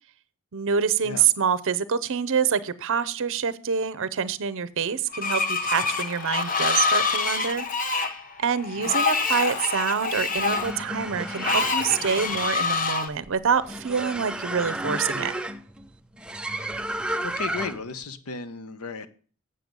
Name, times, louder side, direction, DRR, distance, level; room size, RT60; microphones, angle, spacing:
voice 1, 0.5-7.7 7.9-15.3, right 7 dB, 60° right, 15 dB, 0.6 m, -26 dB
Screech, 5.1-13.1, left 4 dB, 40° left, 0.9 m, -26 dB
sound 1, 5.7-7.7 9.3-9.9 11.7-12.7, left 3 dB, 55° left, 1.3 m, -41 dB
sound 2, 10.1-18.0, right 1 dB, 5° right, 0.4 m, -33 dB
voice 2, 17.2-19.1, left 4 dB, 75° left, 13 dB, 0.8 m, -35 dB
7.8 x 7.7 x 5.2 m, 0.42 s
head